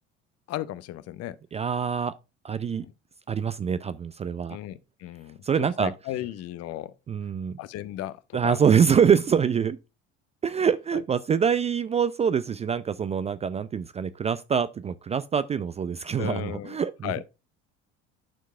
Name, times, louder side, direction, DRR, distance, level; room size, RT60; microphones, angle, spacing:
voice 1, 0.5-1.4 2.7-2.9 4.5-6.9 7.6-8.2 8.4-8.6 10.9-11.0 16.2-16.8 17.0-17.2, left 13 dB, 50° left, 0.6 m, -35 dB
voice 2, 1.5-2.1 2.4-2.8 3.3-4.6 5.4-5.9 7.1-7.5 8.3-9.8 10.4-17.3, right 7 dB, 20° right, 0.3 m, -25 dB
11.5 x 4.6 x 2.4 m
hypercardioid pair, 65°, 33 cm